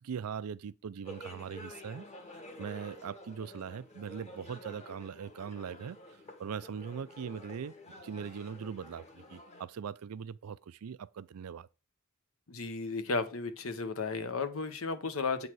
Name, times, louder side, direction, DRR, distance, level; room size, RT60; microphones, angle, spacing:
voice 1, 0.0-2.1 2.6-6.0 6.4-7.7 8.0-11.7, right 7 dB, 85° right, 0.4 m, -40 dB
sound 1, 1.0-9.6, left 1 dB, 30° left, 1.6 m, -50 dB
voice 2, 12.5-15.5, left 4 dB, 70° left, 1.1 m, -34 dB
8.7 x 4.1 x 4.6 m
head